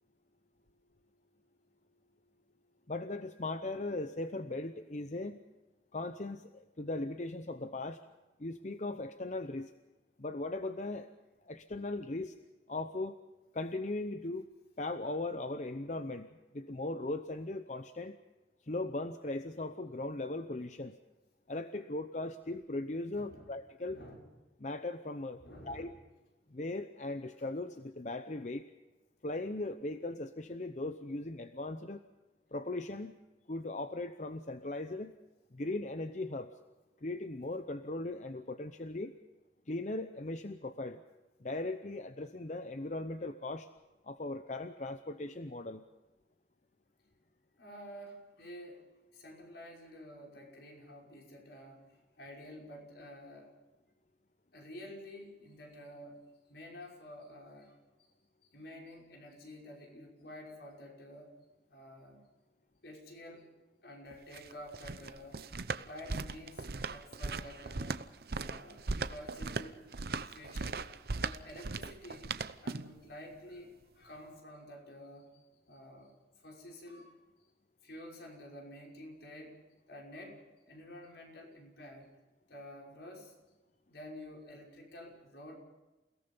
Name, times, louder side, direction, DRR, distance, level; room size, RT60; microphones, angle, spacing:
voice 1, 2.9-5.4 5.9-8.0 8.4-9.7 10.2-11.1 11.5-12.3 12.7-13.1 13.5-14.5 14.8-18.2 18.7-21.0 21.5-24.0 24.6-25.9 26.5-28.7 29.2-32.0 32.5-33.2 33.5-35.1 35.5-36.5 37.0-39.1 39.7-41.0 41.4-43.7 44.1-45.8, left 2 dB, 40° left, 9 dB, 0.8 m, -38 dB
voice 2, 23.1-23.5 23.8-24.3 25.4-25.9 47.6-51.9 52.2-53.5 54.5-56.2 56.5-57.8 58.5-61.4 61.7-62.2 62.8-63.5 63.8-65.5 65.8-68.0 68.4-69.8 70.2-70.8 71.2-75.4 75.7-76.1 76.4-77.2 77.8-79.6 79.9-82.1 82.5-83.3 83.9-85.5, left 1 dB, 75° left, 0 dB, 5.8 m, -50 dB
sound 1, 64.1-73.0, right 3 dB, 60° right, 0.8 m, -38 dB
29.0 x 17.5 x 5.5 m, 1.1 s
head